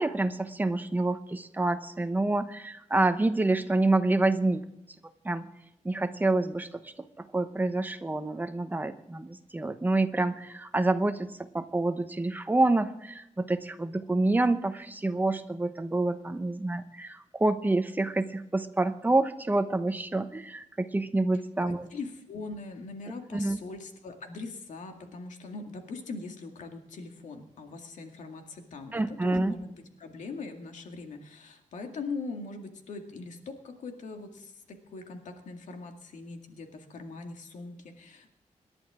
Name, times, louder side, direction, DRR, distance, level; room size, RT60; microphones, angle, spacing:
voice 1, 0.0-4.6 5.2-5.5 5.8-21.9 23.3-23.6 28.9-29.6, right 2 dB, 15° right, 9 dB, 0.9 m, -27 dB
voice 2, 21.6-38.3, left 3 dB, 90° left, 4 dB, 2.1 m, -41 dB
27.0 x 11.0 x 3.7 m, 0.83 s
wide cardioid pair, 130°, 12 cm